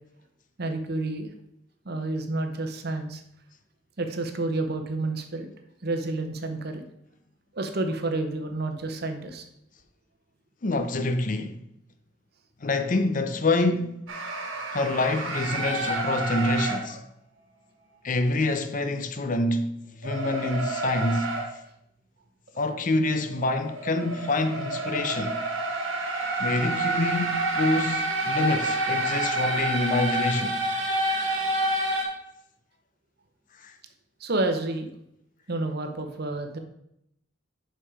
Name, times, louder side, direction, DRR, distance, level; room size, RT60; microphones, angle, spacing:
voice 1, 0.6-1.3 1.8-3.2 4.0-5.5 5.8-6.8 7.5-9.4 34.2-34.9 35.5-36.6, right 2 dB, 50° right, 0.8 m, -29 dB
voice 2, 10.6-11.6 12.6-14.0 14.7-17.0 18.0-21.3 22.6-25.4 26.4-30.6 33.6-33.7, left 2 dB, 40° left, 0.6 m, -26 dB
sound 1, 14.1-16.8 20.0-21.5 23.1-32.0, right 2 dB, 85° right, 1.8 m, -28 dB
5.6 x 5.5 x 4.8 m
head